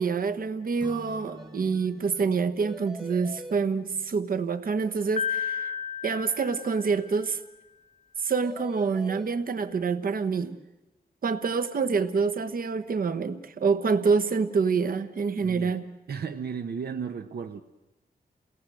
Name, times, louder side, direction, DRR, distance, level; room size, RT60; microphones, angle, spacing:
voice 1, 0.0-5.7 6.0-7.4 8.2-10.6 11.2-15.8, right 5 dB, 60° right, 1.2 m, -27 dB
Acoustic guitar / Strum, 0.8-4.8, right 2 dB, 25° right, 1.6 m, -48 dB
sound 1, 1.4-1.5 1.7-1.9 2.1-2.2 2.6-3.6 8.3-9.3, right 1 dB, ahead, 0.9 m, -42 dB
Piano, 5.2-7.3, left 7 dB, 45° left, 1.0 m, -32 dB
voice 2, 15.4-15.8 16.1-17.6, right 6 dB, 75° right, 1.0 m, -34 dB
29.0 x 18.5 x 7.7 m
wide cardioid pair, 160°, 17 cm